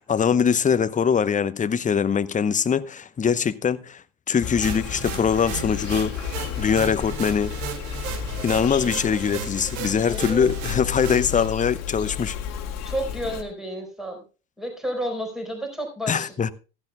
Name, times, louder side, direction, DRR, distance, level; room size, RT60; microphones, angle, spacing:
voice 1, 0.0-6.1 6.6-7.5 8.4-12.4 16.1-16.5, left 7 dB, 20° left, 0.8 m, -22 dB
Insect, 4.4-13.4, left 9 dB, 45° left, 2.2 m, -32 dB
sound 1, 4.6-11.5, right 8 dB, 65° right, 2.2 m, -36 dB
voice 2, 10.1-10.5 12.8-14.2 14.6-16.3, right 1 dB, ahead, 4.6 m, -31 dB
15.5 x 13.5 x 2.3 m
hypercardioid pair, 80°, 37 cm